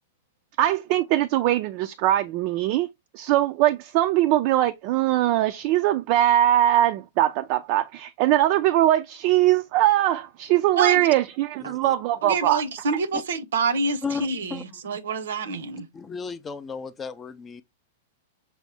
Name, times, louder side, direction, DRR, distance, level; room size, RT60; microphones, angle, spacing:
voice 1, 0.6-2.9 3.1-12.6, right 13 dB, 50° right, 0.4 m, -21 dB
voice 2, 10.8-11.1 12.2-15.9, right 4 dB, 75° right, 0.7 m, -27 dB
voice 3, 11.6-11.9 13.1-13.2 14.0-14.8 15.9-17.6, left 5 dB, 20° left, 0.4 m, -34 dB
6.0 x 2.0 x 3.3 m
hypercardioid pair, 125°, 0 cm